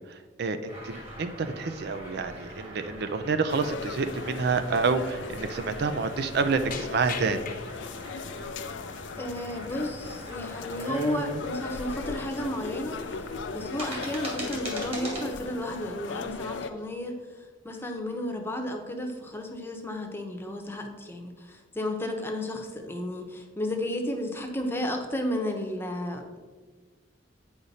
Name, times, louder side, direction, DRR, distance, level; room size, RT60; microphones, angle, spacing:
voice 1, 0.0-7.5, right 4 dB, 60° right, 10 dB, 0.5 m, -28 dB
sound 1, 0.7-15.3, right 1 dB, 35° right, 2.1 m, -41 dB
sound 2, 3.3-3.5 4.0-4.1 5.1-5.2 5.6-5.7 6.7-8.0 8.5-9.2 10.6-10.8 11.1-11.2 11.6-11.8 12.5-12.6 12.9-13.1 13.6-14.1 14.4-15.0 15.5-15.9 16.3-16.4 16.7-17.4 17.8-18.2, left 5 dB, 50° left, 0.8 m, -44 dB
sound 3, 3.5-16.7, left 4 dB, 80° left, 0.5 m, -38 dB
voice 2, 9.2-13.0 13.5-17.1 17.6-26.4, left 1 dB, 15° left, 3 dB, 0.8 m, -33 dB
8.7 x 5.0 x 4.1 m, 1.4 s
head